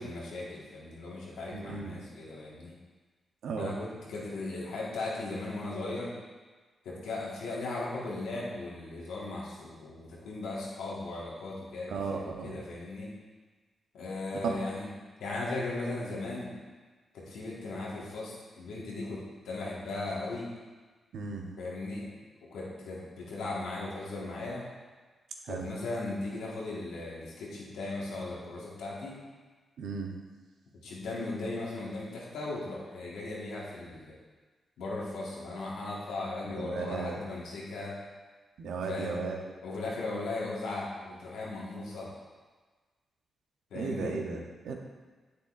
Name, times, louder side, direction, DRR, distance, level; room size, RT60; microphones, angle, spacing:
voice 1, 0.0-2.7 3.5-6.1 6.8-13.1 13.9-14.9 15.2-16.5 17.1-20.5 21.6-22.1 22.5-24.6 25.5-29.2 30.8-34.1 34.8-38.0 38.9-39.2 39.6-42.1 43.7-44.1, left 2 dB, 80° left, -5 dB, 1.6 m, -37 dB
voice 2, 1.5-2.0 3.4-3.7 11.9-12.6 14.4-14.6 21.1-21.5 25.4-25.7 29.8-30.2 36.5-37.2 38.6-39.4 43.7-44.7, right 4 dB, 75° right, 2 dB, 0.8 m, -35 dB
7.8 x 6.7 x 2.5 m, 1.4 s
supercardioid pair, 45°, 0 cm